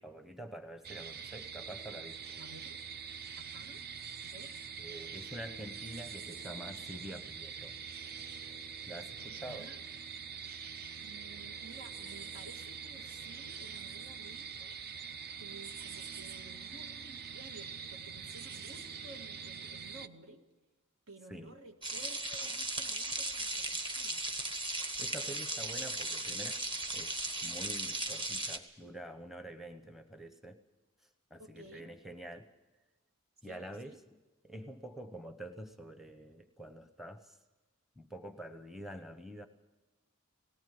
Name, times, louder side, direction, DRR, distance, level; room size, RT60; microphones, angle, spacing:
voice 1, 0.0-2.4 4.8-7.8 8.9-9.7 21.3-21.5 24.7-26.6 26.9-30.6 31.3-32.5 33.4-34.2 34.4-37.4 38.0-39.5, right 1 dB, ahead, 7 dB, 0.9 m, -47 dB
sound 1, 0.8-20.1, right 6 dB, 45° right, 0.6 m, -44 dB
voice 2, 2.4-2.8 3.4-3.8 4.2-4.5 9.3-9.8 11.0-14.8 15.4-20.4 21.1-24.2 31.4-31.9 33.4-34.0, right 2 dB, 75° right, 4 dB, 2.1 m, -54 dB
sound 2, 21.8-28.6, right 2 dB, 25° right, 1.4 m, -37 dB
19.0 x 18.0 x 7.7 m, 1.2 s
head